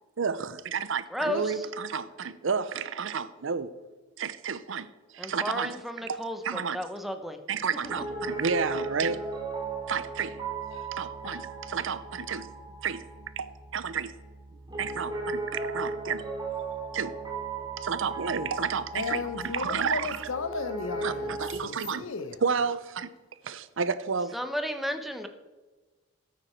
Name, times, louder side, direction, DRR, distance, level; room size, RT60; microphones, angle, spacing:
voice 1, 0.2-3.8 4.2-4.9 5.1-6.8 7.5-9.2 9.9-10.4 10.7-12.5 12.8-13.1 13.4-14.2 14.8-16.2 16.9-17.1 17.8-20.3 21.0-21.1 21.4-22.1 22.4-23.1 23.4-24.4, right 6 dB, 65° right, 0.6 m, -31 dB
voice 2, 1.1-1.6 5.2-7.4 24.3-25.3, equal, ahead, 0.9 m, -33 dB
Piano, 7.8-21.5, right 3 dB, 20° right, 2.3 m, -37 dB
voice 3, 18.9-21.4 21.6-22.4, left 4 dB, 75° left, 0.8 m, -34 dB
13.0 x 9.7 x 4.4 m
head